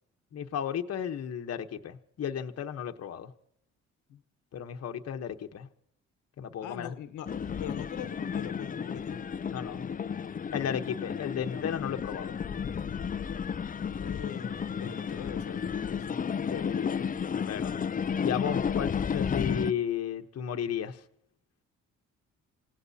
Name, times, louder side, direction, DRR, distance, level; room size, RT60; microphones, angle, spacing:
voice 1, 0.3-3.3 4.5-5.7 6.4-6.9 9.5-9.9 10.5-12.4 16.5-17.7 18.2-21.0, left 8 dB, 55° left, 5 dB, 1.1 m, -34 dB
voice 2, 6.6-9.2 13.9-16.2, left 9 dB, 85° left, 9 dB, 1.2 m, -42 dB
sound 1, 7.3-19.7, left 7 dB, 30° left, 0.5 m, -33 dB
27.5 x 17.0 x 2.8 m, 0.70 s
cardioid pair, 90°, 30 cm